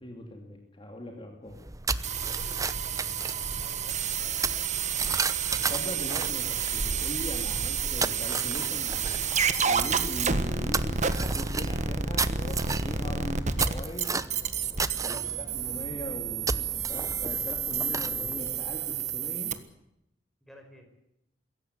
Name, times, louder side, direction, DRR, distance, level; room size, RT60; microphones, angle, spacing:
voice 1, 0.0-1.7 2.3-2.4 5.6-14.2 15.0-19.6, left 1 dB, 30° left, 2 dB, 2.9 m, -40 dB
sound 1, 1.5-19.4, right 4 dB, 20° right, 0.9 m, -34 dB
sound 2, 2.0-19.5, right 6 dB, 40° right, 1.5 m, -30 dB
voice 2, 2.3-5.1 15.0-15.3 20.4-20.8, equal, ahead, 3 dB, 5.4 m, -53 dB
23.0 x 17.0 x 9.7 m, 0.82 s
head